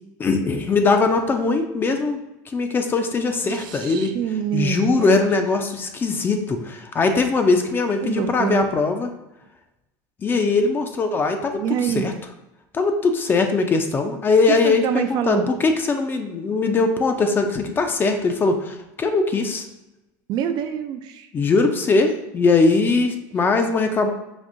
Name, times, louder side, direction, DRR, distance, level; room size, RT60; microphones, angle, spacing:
voice 1, 0.2-2.2 2.5-4.1 4.5-9.1 10.2-12.1 12.7-19.7 21.3-24.1, left 3 dB, 25° left, 6 dB, 0.4 m, -21 dB
voice 2, 3.4-5.2 8.0-8.7 11.5-12.1 14.5-15.5 20.3-21.3, right 9 dB, 50° right, 8 dB, 0.3 m, -26 dB
5.0 x 2.6 x 2.5 m, 0.94 s
supercardioid pair, 125°, 9 cm